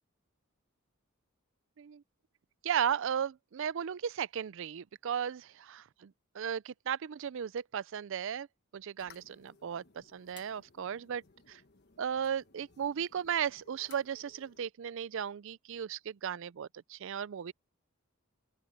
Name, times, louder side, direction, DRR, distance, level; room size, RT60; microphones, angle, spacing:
voice 1, 2.6-8.5 8.7-9.8 10.1-11.2 11.5-11.6 12.0-17.5, right 8 dB, 65° right, 0.4 m, -35 dB
sound 1, 9.0-14.6, left 5 dB, 55° left, 1.3 m, -61 dB
open air
head